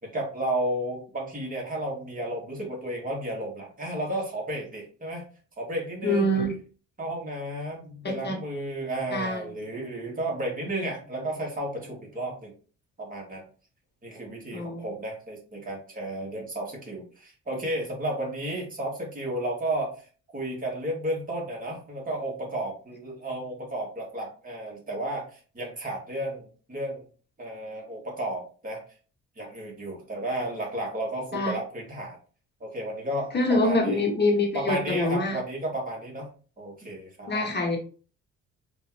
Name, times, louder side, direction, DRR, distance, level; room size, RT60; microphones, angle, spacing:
voice 1, 0.0-5.2 5.6-6.4 7.0-12.5 13.0-13.4 14.0-20.0 20.3-27.0 27.4-28.8 29.4-32.2 32.6-34.0 34.5-36.3 36.6-37.5, right 1 dB, 30° right, -2 dB, 2.3 m, -33 dB
voice 2, 6.0-6.5 8.0-8.4 9.1-9.4 14.5-14.9 31.3-31.6 33.3-35.4 37.3-37.8, left 1 dB, 35° left, 1 dB, 1.4 m, -25 dB
4.2 x 3.8 x 3.0 m, 0.38 s
cardioid pair, 90°, 30 cm